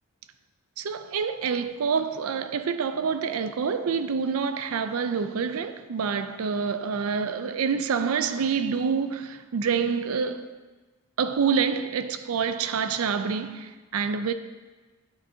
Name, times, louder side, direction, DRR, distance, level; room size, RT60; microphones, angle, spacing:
voice 1, 0.8-10.5 11.2-14.3, right 6 dB, 90° right, 0.5 m, -27 dB
8.5 x 8.4 x 2.7 m
head